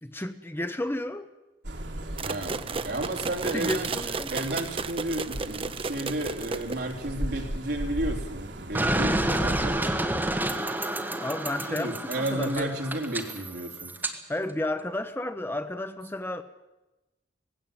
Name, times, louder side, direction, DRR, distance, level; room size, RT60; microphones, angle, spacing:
voice 1, 0.0-1.3 3.5-4.3 11.2-12.8 14.3-16.4, left 1 dB, 15° left, 0.8 m, -32 dB
sound 1, 1.6-9.0, right 1 dB, 80° right, 2.2 m, -38 dB
sound 2, 2.2-7.1, right 4 dB, 30° right, 0.6 m, -33 dB
voice 2, 2.2-3.9 4.3-10.1 11.7-13.9, right 1 dB, 65° right, 3.5 m, -32 dB
sound 3, 8.8-14.1, right 1 dB, 10° right, 1.6 m, -29 dB
19.0 x 16.5 x 9.1 m
head